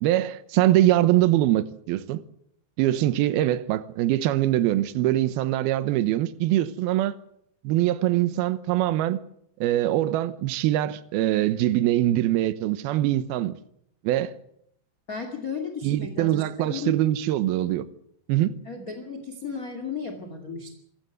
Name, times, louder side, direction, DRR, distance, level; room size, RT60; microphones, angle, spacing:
voice 1, 0.0-2.2 2.8-7.1 7.6-9.2 9.6-13.6 14.0-14.4 15.8-17.9 18.3-18.6, right 14 dB, 70° right, 2.7 m, -23 dB
voice 2, 15.1-16.9 18.7-20.7, left 5 dB, 25° left, 2.0 m, -34 dB
26.5 x 15.0 x 8.1 m
omnidirectional pair, 5.0 m